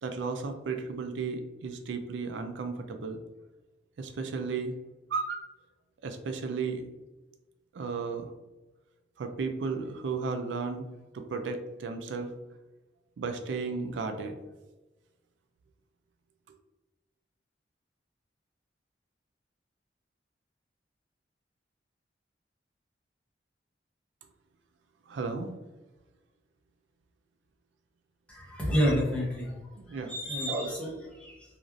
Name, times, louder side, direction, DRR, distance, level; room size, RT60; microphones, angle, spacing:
voice 1, 0.0-3.2 4.0-4.8 5.1-5.5 6.0-6.8 7.7-8.3 9.2-10.8 11.1-12.3 13.2-14.4 25.1-25.5 29.8-30.1, right 4 dB, 85° right, 6 dB, 0.4 m, -34 dB
voice 2, 28.3-29.5 30.1-30.9 31.2-31.3, equal, 5° left, -5 dB, 0.8 m, -28 dB
3.1 x 2.5 x 2.5 m, 1.1 s
head